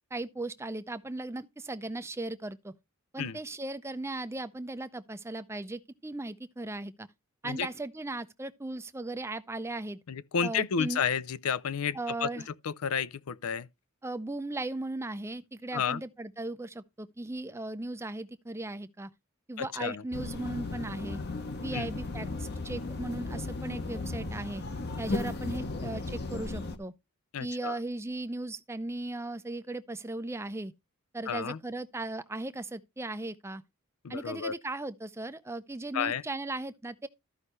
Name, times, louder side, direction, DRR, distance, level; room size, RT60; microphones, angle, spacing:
voice 1, 0.1-2.7 3.1-7.1 7.4-10.0 10.4-11.0 11.9-12.5 14.0-19.1 19.5-21.2 21.6-24.6 25.0-26.9 27.4-30.7 31.1-33.6 34.1-37.1, right 2 dB, 10° right, 0.5 m, -37 dB
voice 2, 10.1-12.3 12.6-13.7 15.7-16.0 19.6-20.0 21.7-21.9 27.3-27.8 31.3-31.6 34.0-34.5 35.9-36.2, left 7 dB, 80° left, 0.5 m, -31 dB
sound 1, 20.1-26.8, left 2 dB, 50° left, 1.0 m, -35 dB
13.5 x 5.5 x 3.1 m
head